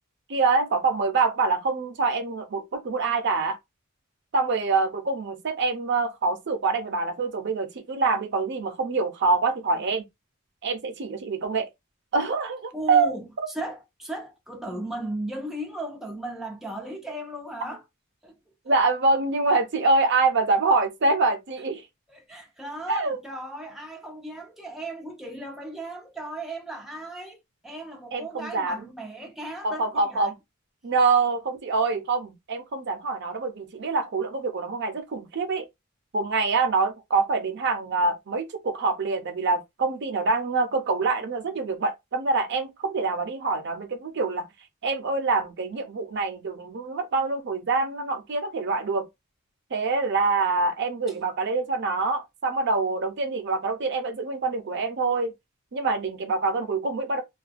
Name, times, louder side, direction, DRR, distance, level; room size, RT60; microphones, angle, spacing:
voice 1, 0.3-3.6 4.3-10.0 10.6-11.7 12.1-13.1 18.7-21.8 22.9-23.2 28.1-28.8 29.6-30.3 30.8-35.7 36.1-44.5 44.8-49.1 49.7-55.3 55.7-57.2, right 3 dB, 55° right, 0.5 m, -25 dB
voice 2, 12.7-17.8 18.2-18.3 22.1-30.3 51.1-51.2, right 1 dB, ahead, 0.4 m, -36 dB
2.4 x 2.2 x 2.4 m
head